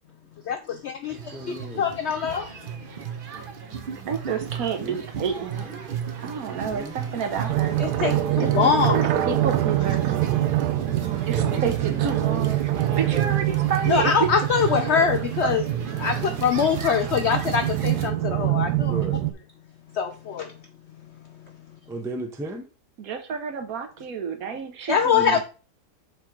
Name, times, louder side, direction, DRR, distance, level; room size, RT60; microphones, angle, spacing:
voice 1, 0.5-2.5 2.8-2.9 7.8-9.1 13.9-15.6 16.0-19.0 19.9-20.7 20.9-21.6 24.9-25.4, left 7 dB, 75° left, 0.6 m, -24 dB
voice 2, 1.1-1.8 3.3-4.1 4.8-5.0 5.3-5.9 6.6-6.9 11.3-12.5 16.0-16.8 18.9-19.2 21.9-22.7 25.2-25.4, right 2 dB, 5° right, 0.4 m, -37 dB
sound 1, 1.1-18.1, right 7 dB, 45° right, 0.8 m, -34 dB
voice 3, 4.1-5.7 6.2-7.8 8.4-8.5 8.9-10.0 11.3-12.6 12.9-14.3 14.8-15.5 23.0-25.4, right 6 dB, 65° right, 1.3 m, -30 dB
sound 2, 7.5-19.3, right 14 dB, 85° right, 1.2 m, -25 dB
6.6 x 3.7 x 4.5 m
omnidirectional pair, 1.7 m